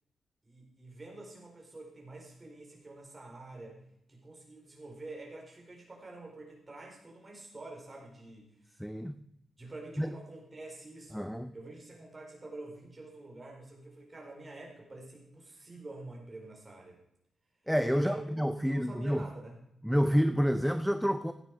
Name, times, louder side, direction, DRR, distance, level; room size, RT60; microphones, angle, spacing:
voice 1, 0.4-3.8 4.1-8.5 9.2-9.3 9.6-11.3 11.5-17.0 17.9-18.2 18.5-19.6, right 2 dB, 20° right, -1 dB, 4.1 m, -47 dB
voice 2, 8.8-9.2 10.0-10.1 11.1-11.5 17.7-19.2 19.8-21.3, equal, ahead, 11 dB, 0.5 m, -28 dB
16.0 x 9.2 x 4.7 m, 0.77 s
wide cardioid pair, 160°, 0 cm